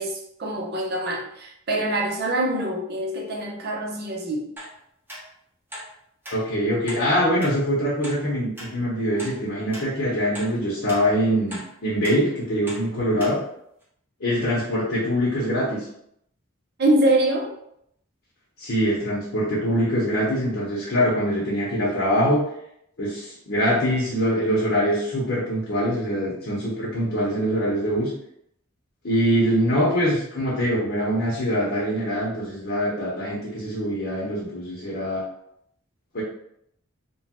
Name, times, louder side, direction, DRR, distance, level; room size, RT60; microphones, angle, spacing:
voice 1, 0.0-4.5 16.8-17.5, right 1 dB, 50° right, 0 dB, 0.6 m, -24 dB
sound 1, 4.6-4.7 5.1-5.2 5.7-5.9 6.2-6.4 6.9-7.0 7.4-7.5 8.0-8.2 8.6-8.7 9.2-9.3 9.7-9.9 10.3-10.5 10.9-11.0 11.5-11.7 12.0-12.2 12.7-12.8 13.2-13.3 13.8-13.9, equal, 10° right, 0.7 m, -37 dB
voice 2, 6.3-13.4 14.2-15.9 18.6-22.4 23.0-28.1 29.0-35.2 36.1-36.2, equal, 60° left, -6 dB, 0.8 m, -23 dB
2.9 x 2.2 x 2.9 m, 0.74 s
head